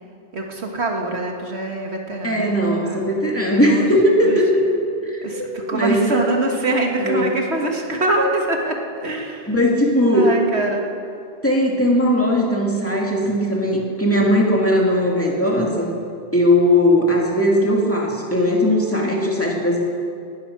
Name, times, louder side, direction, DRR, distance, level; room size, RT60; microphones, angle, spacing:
voice 1, 0.3-3.0 3.7-3.9 4.2-4.4 5.2-9.5 10.1-10.8, right 2 dB, 70° right, 1 dB, 1.9 m, -24 dB
voice 2, 2.2-4.7 5.0-6.0 7.0-7.3 9.5-10.3 11.4-15.9 16.3-19.8, left 1 dB, 10° left, -2 dB, 2.2 m, -18 dB
19.0 x 11.0 x 6.0 m, 2.5 s
omnidirectional pair, 1.2 m